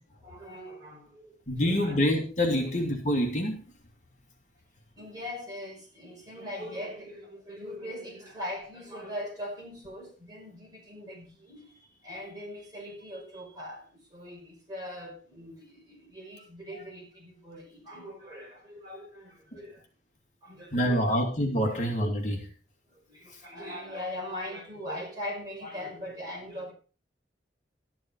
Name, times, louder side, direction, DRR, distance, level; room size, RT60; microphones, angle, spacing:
voice 1, 0.2-1.4 1.8-2.0 2.6-2.7 5.0-19.8 20.4-21.2 21.7-21.8 22.9-26.7, left 1 dB, 20° right, 5.2 m, -41 dB
voice 2, 1.5-3.6 20.7-22.5 23.3-23.4, equal, 40° left, 2.5 m, -26 dB
13.0 x 11.0 x 4.7 m
head